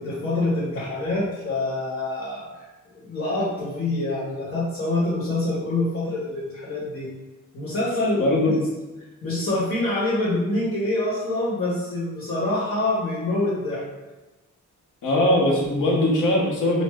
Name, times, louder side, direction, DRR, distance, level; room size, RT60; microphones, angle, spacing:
voice 1, 0.0-2.4 3.0-7.1 7.5-8.5 9.2-13.8, left 2 dB, 45° left, -8 dB, 1.0 m, -26 dB
voice 2, 8.2-8.6 15.0-16.8, left 1 dB, 80° left, -2 dB, 0.8 m, -20 dB
3.1 x 2.0 x 3.4 m, 1.1 s
wide cardioid pair, 165°, 31 cm